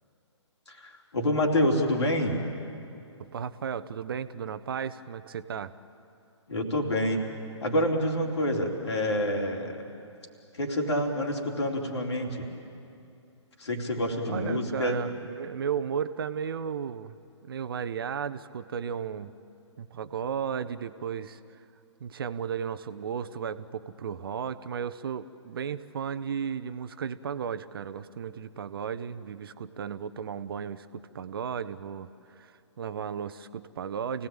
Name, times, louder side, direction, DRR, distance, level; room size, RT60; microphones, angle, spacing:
voice 1, 0.7-2.4 6.5-7.2 7.6-9.9 10.5-12.5 13.6-15.0, left 1 dB, 60° left, 1 dB, 3.8 m, -27 dB
voice 2, 3.3-5.7 14.3-17.1 17.4-19.3 19.8-21.6 22.0-32.1 32.4-34.3, right 7 dB, 50° right, 13 dB, 0.9 m, -34 dB
28.5 x 17.5 x 9.0 m, 2.6 s
figure-of-eight pair, 130°, 16 cm